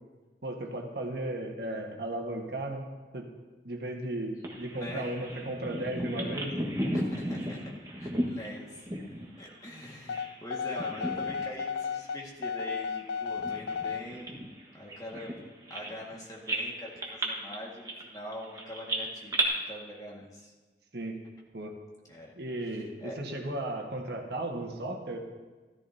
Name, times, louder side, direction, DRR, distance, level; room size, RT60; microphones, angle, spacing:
voice 1, 0.4-2.8 3.1-3.3 3.6-6.6 6.8-6.9 20.9-21.2 21.5-21.7 22.3-25.2, right 1 dB, 70° right, 1 dB, 1.5 m, -35 dB
Bird vocalization bird call bird song, 4.4-10.4 10.7-11.6 11.9-12.1 12.7-16.1 16.5-19.4, right 1 dB, 20° right, 1.5 m, -35 dB
voice 2, 4.7-5.1 6.9-7.6 8.0-8.8 9.4-14.4 14.7-20.5 22.1-22.3 22.6-23.2, equal, 20° left, -2 dB, 1.8 m, -44 dB
sound 1, 10.1-14.1, left 6 dB, 80° left, 0.3 m, -34 dB
14.0 x 14.0 x 2.8 m, 1.3 s
head